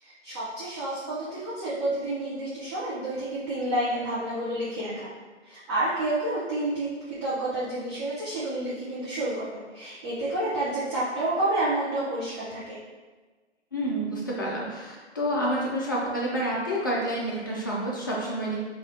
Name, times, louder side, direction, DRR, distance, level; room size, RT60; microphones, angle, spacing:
voice 1, 0.0-5.1 5.4-12.8, right 1 dB, 25° right, -9 dB, 0.7 m, -29 dB
voice 2, 13.7-18.6, right 1 dB, 20° left, -5 dB, 0.4 m, -29 dB
4.6 x 2.4 x 2.8 m, 1.3 s
figure-of-eight pair, 135°, 35 cm